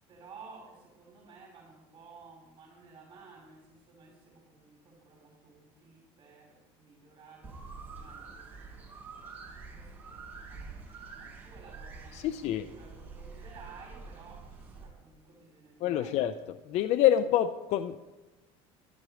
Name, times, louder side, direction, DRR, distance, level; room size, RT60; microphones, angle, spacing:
voice 1, 0.0-8.8 9.1-16.2, right 4 dB, 30° right, -2 dB, 5.1 m, -54 dB
sound 1, 7.4-14.8, right 4 dB, 15° right, 5.4 m, -47 dB
voice 2, 12.1-12.7 15.8-16.3 16.7-18.0, left 11 dB, 55° left, 11 dB, 0.7 m, -26 dB
13.5 x 12.0 x 5.1 m, 1.1 s
supercardioid pair, 130°, 14 cm